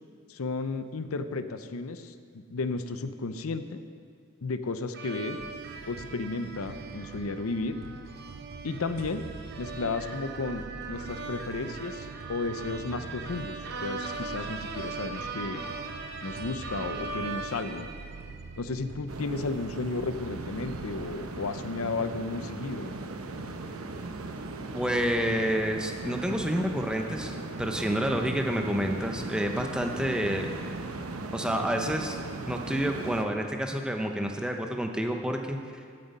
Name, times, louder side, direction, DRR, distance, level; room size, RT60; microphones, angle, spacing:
voice 1, 0.3-3.8 4.4-5.4 5.9-7.7 8.6-9.2 9.6-15.6 16.2-17.9 18.6-23.0, left 3 dB, 90° left, 10 dB, 0.7 m, -33 dB
sound 1, 4.9-18.6, right 3 dB, 50° right, 1.0 m, -40 dB
sound 2, 5.4-21.2, right 4 dB, 65° right, 0.6 m, -45 dB
sound 3, 19.1-33.3, right 3 dB, 85° right, 0.9 m, -38 dB
voice 2, 24.7-30.6 31.3-32.2 32.5-35.6, equal, 5° right, 3 dB, 0.7 m, -29 dB
15.0 x 7.7 x 5.4 m, 2.2 s
head